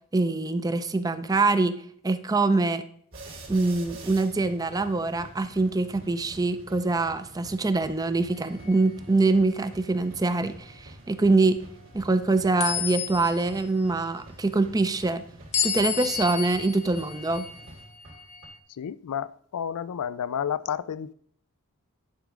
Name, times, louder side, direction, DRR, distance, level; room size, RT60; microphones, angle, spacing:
voice 1, 0.1-2.8 3.5-11.6 11.9-15.2 15.6-17.4, right 3 dB, 15° right, 0.4 m, -24 dB
sound 1, 3.1-18.5, right 1 dB, 60° right, 2.4 m, -47 dB
sound 2, 8.3-8.9 9.5-9.7 12.6-13.7 15.5-18.6, left 7 dB, 30° left, 0.6 m, -32 dB
voice 2, 18.8-21.1, left 8 dB, 90° left, 0.4 m, -31 dB
10.5 x 5.0 x 3.6 m
head